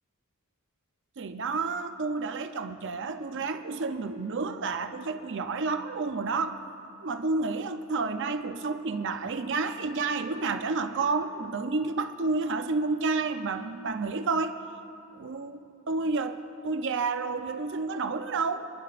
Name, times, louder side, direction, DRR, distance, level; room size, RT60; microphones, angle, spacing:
voice 1, 1.2-6.6 7.0-14.6 15.1-15.6 15.9-18.7, right 4 dB, 55° right, 8 dB, 0.6 m, -30 dB
27.0 x 11.5 x 2.5 m, 2.5 s
head